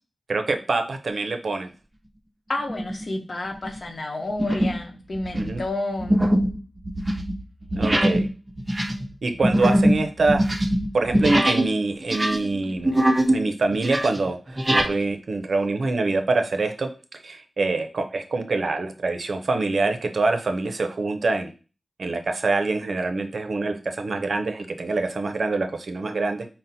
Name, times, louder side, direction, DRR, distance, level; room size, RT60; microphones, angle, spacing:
voice 1, 0.3-1.7 5.3-5.6 7.8-8.3 9.2-10.4 10.9-13.0 13.3-16.9 17.2-21.5 22.0-26.5, right 3 dB, 70° right, 6 dB, 0.5 m, -25 dB
voice 2, 2.5-6.2, left 2 dB, 55° left, 3 dB, 0.8 m, -30 dB
sound 1, 2.7-3.0 3.5-3.8 4.4-4.9 5.1-11.7 12.0-13.4 13.7-14.9, right 1 dB, 20° right, 0.6 m, -22 dB
3.9 x 2.1 x 4.1 m, 0.34 s
wide cardioid pair, 60°, 0 cm